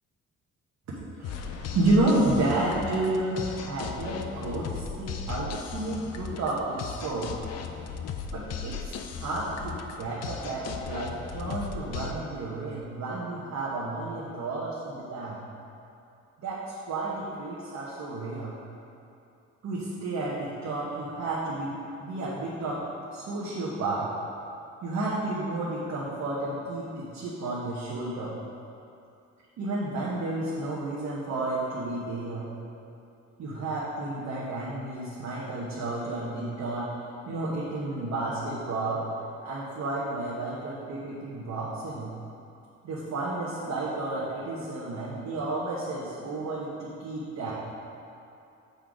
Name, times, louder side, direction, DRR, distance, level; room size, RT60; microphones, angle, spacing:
sound 1, 1.2-12.1, left 6 dB, 60° left, 0.5 m, -37 dB
voice 1, 1.2-7.3 8.3-15.5 16.4-18.5 19.6-21.7 22.0-22.8 23.1-24.1 24.8-28.3 29.6-32.5 33.4-36.9 37.3-39.0 39.4-42.1 42.8-47.5, right 2 dB, 65° right, -7 dB, 1.2 m, -31 dB
6.9 x 3.9 x 4.8 m, 2.6 s
cardioid pair, 90°, 30 cm